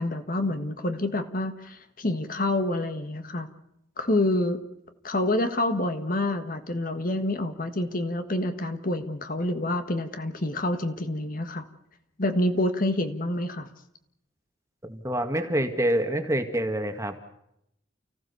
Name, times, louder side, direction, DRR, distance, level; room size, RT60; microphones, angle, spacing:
voice 1, 0.0-3.5 4.0-4.6 5.0-11.7 12.2-13.7, left 1 dB, 45° left, 8 dB, 1.6 m, -27 dB
voice 2, 14.9-17.2, right 1 dB, 15° right, 6 dB, 1.9 m, -26 dB
30.0 x 15.5 x 7.0 m, 0.80 s
head